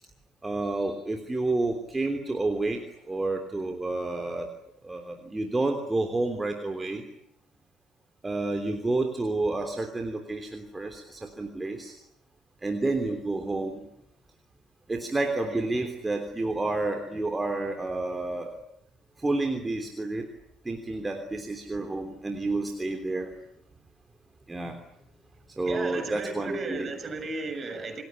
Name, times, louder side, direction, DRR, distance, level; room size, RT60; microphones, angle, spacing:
voice 1, 0.4-2.8 3.1-4.5 4.8-7.0 8.2-11.9 12.6-13.9 14.9-18.5 19.2-20.3 20.6-23.3 24.5-24.8 25.6-26.8, right 2 dB, 15° right, 5 dB, 3.3 m, -30 dB
voice 2, 15.5-15.9 25.7-28.0, right 3 dB, 30° right, 8 dB, 6.9 m, -35 dB
28.5 x 20.0 x 10.0 m, 0.79 s
figure-of-eight pair, 60°, 0 cm